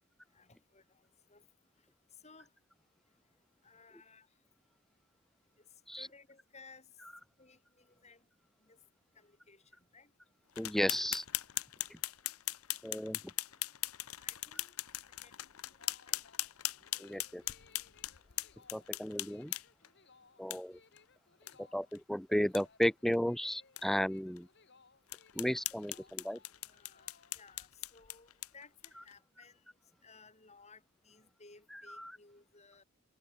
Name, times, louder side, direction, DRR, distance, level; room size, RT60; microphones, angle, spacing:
voice 1, 0.3-1.5 2.1-2.5 3.6-4.3 5.6-5.7 5.9-6.9 7.4-8.3 8.6-8.8 9.2-10.1 14.2-14.8 15.2-15.4 15.7-15.8 16.1-16.2 26.6-29.7 30.0-32.8, left 4 dB, 30° left, 5.4 m, -59 dB
sound 1, 10.5-19.9 20.5-20.6 21.0-21.1 21.5-21.6 21.9-22.0 22.4-22.6 23.1-23.2 23.8-23.9 24.4-24.5 25.1-29.1, left 16 dB, 80° left, 1.0 m, -40 dB
voice 2, 10.6-11.2 11.9-12.0 12.8-13.2 17.0-17.4 18.7-19.5 20.4-20.8 21.6-24.5 25.4-26.4 32.0-32.1, equal, ahead, 0.3 m, -34 dB
sound 2, 15.8-27.7, left 4 dB, 50° left, 3.3 m, -65 dB
head